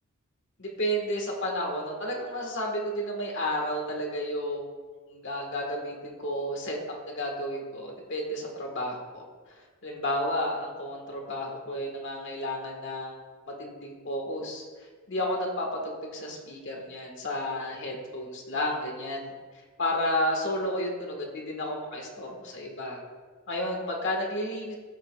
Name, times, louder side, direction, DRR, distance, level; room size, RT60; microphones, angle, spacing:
voice 1, 0.6-4.6 5.1-6.8 7.1-9.2 9.8-13.2 13.6-14.6 15.1-19.3 19.8-23.0 23.5-24.7, left 1 dB, 55° left, 0 dB, 1.6 m, -32 dB
14.0 x 6.1 x 2.4 m, 1.4 s
head